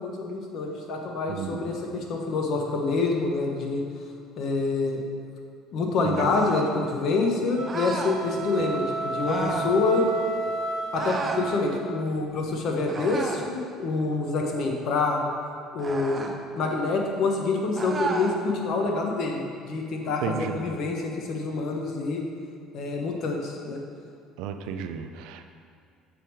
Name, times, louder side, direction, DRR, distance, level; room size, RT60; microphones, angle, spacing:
voice 1, 0.0-3.8 4.4-5.0 5.7-10.1 10.9-15.2 15.7-16.2 16.6-22.2 22.7-23.8, left 3 dB, 55° left, 1 dB, 0.9 m, -27 dB
voice 2, 1.3-1.7 6.0-6.3 20.2-20.6 24.4-25.5, right 7 dB, 80° right, 8 dB, 0.4 m, -33 dB
sound 1, 6.1-6.7 7.7-8.2 9.2-9.7 10.9-11.5 12.9-13.5 15.8-16.4 17.8-18.4, right 3 dB, 25° right, 0.5 m, -32 dB
sound 2, 7.5-12.0, right 3 dB, 60° right, 0.8 m, -32 dB
6.7 x 3.5 x 4.5 m, 2.3 s
cardioid pair, 120°, 0 cm